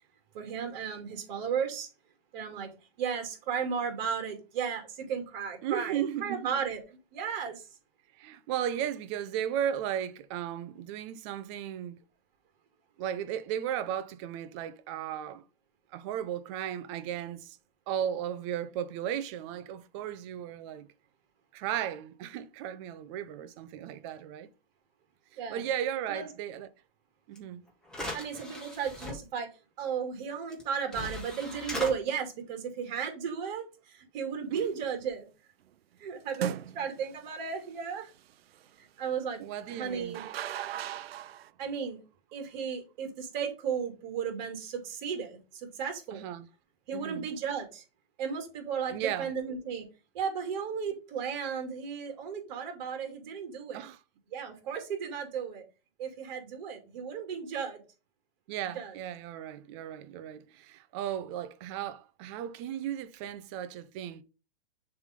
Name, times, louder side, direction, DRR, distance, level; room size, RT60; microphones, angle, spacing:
voice 1, 0.3-1.9 2.3-2.7 3.0-7.6 25.4-25.6 26.1-26.3 28.1-29.5 29.8-35.3 36.0-38.1 38.8-39.4 39.8-40.3 41.6-42.0 42.3-46.2 46.9-47.8 48.2-49.9 50.1-53.8 54.3-55.6 56.0-57.8 58.7-59.0, right 7 dB, 50° right, 2.5 m, -34 dB
voice 2, 5.6-6.6 8.1-12.0 13.0-15.4 15.9-17.6 17.9-20.9 21.5-24.5 25.3-26.7 27.3-27.7 34.5-34.7 39.4-40.2 46.1-46.5 46.9-47.3 48.9-49.3 53.7-54.0 58.5-64.2, right 10 dB, 30° right, 0.6 m, -35 dB
sound 1, 27.4-27.5 27.9-29.1 30.5-30.6 30.9-31.9, left 1 dB, ahead, 1.5 m, -38 dB
sound 2, 34.5-34.8 36.3-37.1 39.7-41.5, right 10 dB, 85° right, 0.5 m, -38 dB
6.9 x 3.4 x 5.1 m
hypercardioid pair, 145°, 30 cm